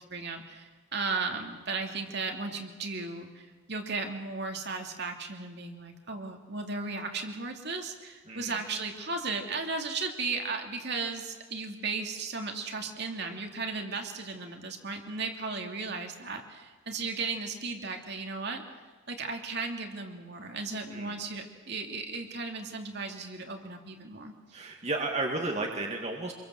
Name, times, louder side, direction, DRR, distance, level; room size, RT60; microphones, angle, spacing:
voice 1, 0.0-18.6 19.1-24.3, right 4 dB, 55° right, 3 dB, 2.8 m, -35 dB
voice 2, 8.3-8.6 20.9-21.2 24.5-26.3, right 2 dB, 30° right, 1 dB, 2.1 m, -33 dB
27.0 x 23.0 x 7.7 m, 1.3 s
head